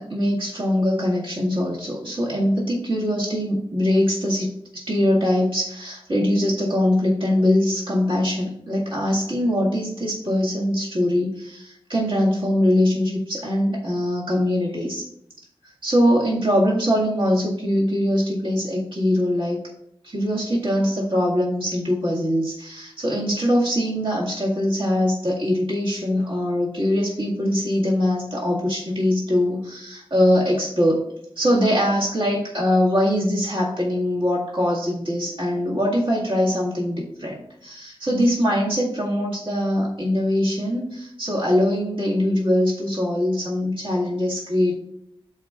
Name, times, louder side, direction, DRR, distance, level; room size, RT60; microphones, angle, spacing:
voice 1, 0.0-15.0 15.8-19.6 20.0-31.0 31.4-44.7, equal, 60° right, -5 dB, 1.9 m, -22 dB
12.5 x 4.4 x 2.4 m, 0.75 s
wide cardioid pair, 65°, 10 cm